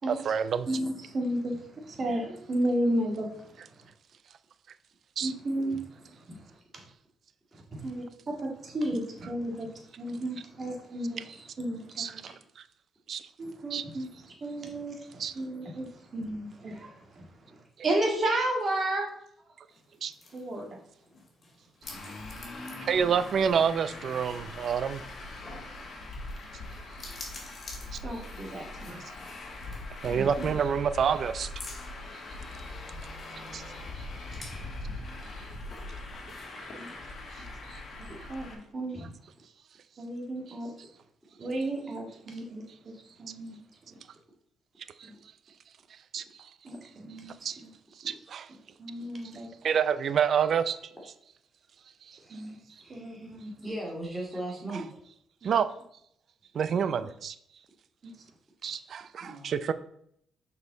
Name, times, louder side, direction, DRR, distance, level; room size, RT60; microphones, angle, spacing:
voice 1, 0.1-0.7 5.2-5.3 5.7-5.8 12.0-12.3 13.1-13.2 13.7-13.8 15.2-15.3 20.0-20.1 22.8-25.0 27.9-28.0 28.9-29.0 30.0-31.5 33.5-33.6 37.7-37.8 46.1-46.2 47.4-47.6 48.0-48.5 49.6-50.8 55.4-55.7 56.5-57.4 58.6-59.7, right 7 dB, 60° right, 13 dB, 0.5 m, -28 dB
voice 2, 0.7-3.3 5.2-6.4 7.7-9.7 10.0-12.3 13.4-14.1 14.4-15.9 16.1-17.2 17.8-19.1 20.3-20.7 28.0-29.0 36.7-36.9 38.0-39.1 40.0-40.7 41.4-42.6 43.2-43.6 45.0-45.1 46.6-47.7 48.8-49.5 52.3-52.6 52.9-53.5 55.4-55.5 58.0-58.1 58.6-58.8, right 1 dB, 40° right, 1 dB, 2.0 m, -33 dB
sound 1, 19.7-36.7, left 2 dB, 35° left, 2.3 m, -51 dB
Traffic noise roadway noise, 21.8-38.6, left 2 dB, 55° left, 1.5 m, -41 dB
voice 3, 30.1-30.5 52.2-54.8 59.2-59.5, right 1 dB, 5° right, -3 dB, 2.4 m, -39 dB
6.3 x 5.4 x 3.9 m, 0.70 s
cardioid pair, 90°, 0 cm